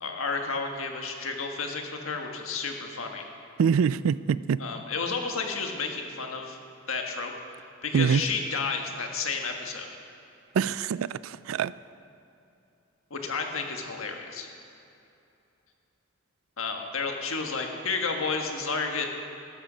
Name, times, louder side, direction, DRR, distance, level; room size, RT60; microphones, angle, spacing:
voice 1, 0.0-3.2 4.6-6.6 6.9-7.3 7.8-9.9 13.1-14.5 16.6-19.1, left 4 dB, 80° left, 3 dB, 1.5 m, -31 dB
voice 2, 3.6-4.6 7.9-8.2 10.5-11.7, right 7 dB, 75° right, 18 dB, 0.3 m, -24 dB
13.5 x 12.5 x 5.1 m, 2.8 s
head